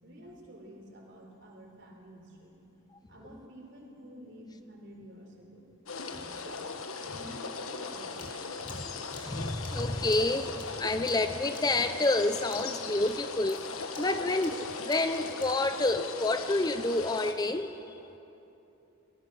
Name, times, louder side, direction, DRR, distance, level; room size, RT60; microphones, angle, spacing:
voice 1, 0.0-2.6 3.1-5.7 6.2-6.7 7.0-8.3, equal, 55° right, 1 dB, 3.9 m, -50 dB
sound 1, 5.9-17.3, left 4 dB, 85° left, 1.4 m, -39 dB
sound 2, 8.2-12.2 12.5-12.8 13.1-15.6, left 4 dB, 35° left, 2.9 m, -51 dB
voice 2, 8.7-13.7 14.0-17.9, left 2 dB, 20° left, 9 dB, 0.5 m, -29 dB
24.5 x 19.0 x 6.2 m, 2.9 s
head